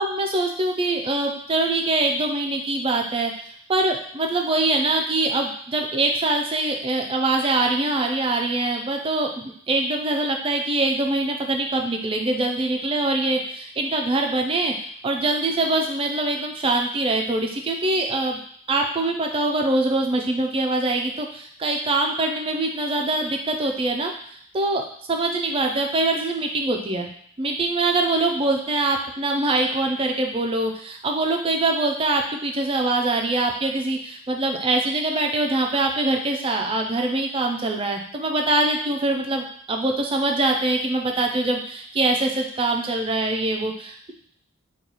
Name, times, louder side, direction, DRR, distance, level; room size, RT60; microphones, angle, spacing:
voice 1, 0.0-18.4 18.7-24.1 24.5-27.1 27.4-44.1, right 2 dB, 25° right, 2 dB, 0.3 m, -23 dB
3.0 x 2.3 x 3.9 m, 0.62 s
head